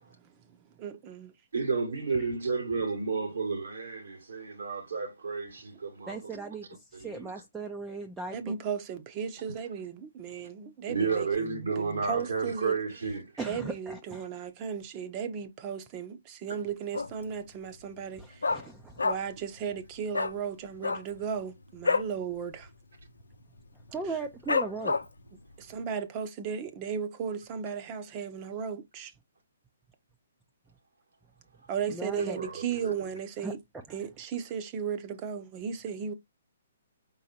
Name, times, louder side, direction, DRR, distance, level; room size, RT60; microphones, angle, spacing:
voice 1, 0.0-1.3 6.4-6.5 8.3-12.8 13.4-18.6 19.0-22.7 24.0-24.2 25.6-29.1 31.7-33.6 33.9-36.1, right 7 dB, 30° right, 0.9 m, -36 dB
voice 2, 1.5-6.3 6.9-7.3 10.9-13.3 32.2-32.9, right 4 dB, 80° right, 2.4 m, -32 dB
voice 3, 6.1-8.5 13.4-14.3 18.2-19.1 23.9-25.0 31.9-32.4 33.4-33.5, right 3 dB, 10° right, 0.6 m, -37 dB
Dog, 16.9-17.4 17.6-17.7 18.0-19.4 19.7-19.8 20.1-20.4 20.7-22.2 22.5-22.7 22.9-23.3 23.8-23.9 24.5-25.3 25.7-25.8, left 4 dB, 90° left, 0.6 m, -29 dB
4.9 x 3.9 x 2.8 m
hypercardioid pair, 140°, 0 cm